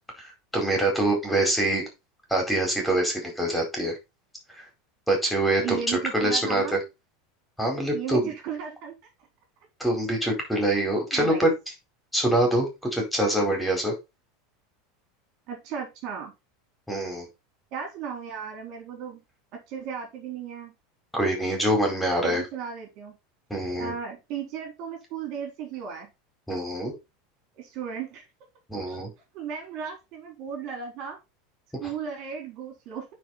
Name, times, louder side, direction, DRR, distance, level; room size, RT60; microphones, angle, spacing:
voice 1, 0.2-1.8 2.3-4.0 4.5-4.7 5.1-6.8 7.6-8.2 9.8-11.5 12.1-13.9 16.9-17.3 21.1-22.4 23.5-23.9 26.5-26.9 28.7-29.1 31.8-31.9, right 1 dB, 5° left, 1 dB, 4.6 m, -25 dB
voice 2, 5.6-6.8 7.9-9.0 11.1-11.4 15.5-16.3 17.7-19.2 19.5-20.7 22.2-23.1 23.8-26.1 27.5-28.2 28.9-29.0 29.3-31.2 31.8-33.1, right 7 dB, 55° right, 3 dB, 4.1 m, -35 dB
9.3 x 5.0 x 4.3 m, 0.25 s
hypercardioid pair, 100°, 0 cm